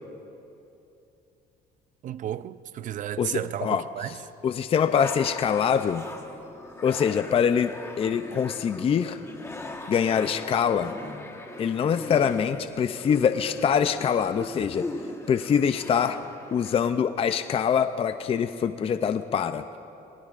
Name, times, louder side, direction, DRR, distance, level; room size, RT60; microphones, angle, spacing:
voice 1, 2.0-4.1, right 11 dB, 50° right, 0.5 m, -33 dB
voice 2, 3.2-6.0 6.8-9.2 9.9-10.9 11.6-14.9 15.3-16.2 16.5-19.6, left 7 dB, 35° left, 0.4 m, -24 dB
sound 1, 4.9-16.9, left 2 dB, 15° left, 1.3 m, -40 dB
26.5 x 19.5 x 2.5 m
cardioid pair, 110°, 17 cm